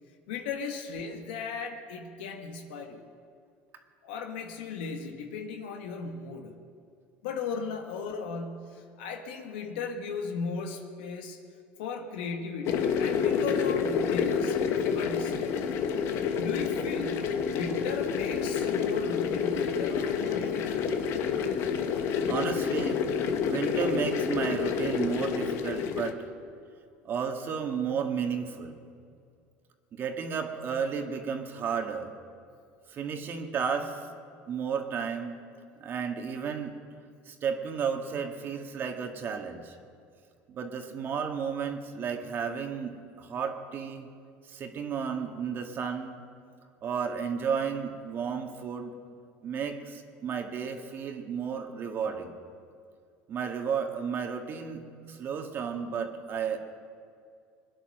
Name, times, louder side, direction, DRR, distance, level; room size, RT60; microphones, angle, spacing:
voice 1, 0.3-3.0 4.0-6.5 7.2-11.4 11.8-15.8 16.4-20.8, left 5 dB, 85° left, 3 dB, 1.5 m, -36 dB
sound 1, 12.6-26.1, left 6 dB, 60° left, 1.3 m, -29 dB
voice 2, 22.3-23.0 23.4-26.3 27.0-28.8 29.9-32.1 32.9-34.1 34.5-35.3 35.8-36.8 37.3-39.8 40.5-44.1 44.4-46.2 46.8-48.9 49.4-52.4 53.3-56.6, right 6 dB, 40° right, 4 dB, 1.8 m, -33 dB
21.5 x 10.0 x 6.6 m, 2.3 s
supercardioid pair, 105°, 5 cm